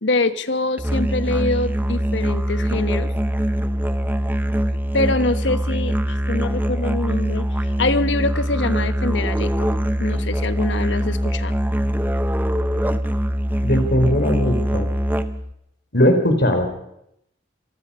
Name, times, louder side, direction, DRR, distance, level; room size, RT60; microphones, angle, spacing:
voice 1, 0.0-3.1 4.9-9.7 10.0-11.5, left 2 dB, 75° left, 11 dB, 1.3 m, -24 dB
Musical instrument, 0.8-15.5, equal, 10° right, 0.8 m, -23 dB
voice 2, 13.6-14.9 15.9-16.7, equal, 60° left, 5 dB, 4.3 m, -19 dB
26.5 x 19.5 x 5.6 m, 0.78 s
head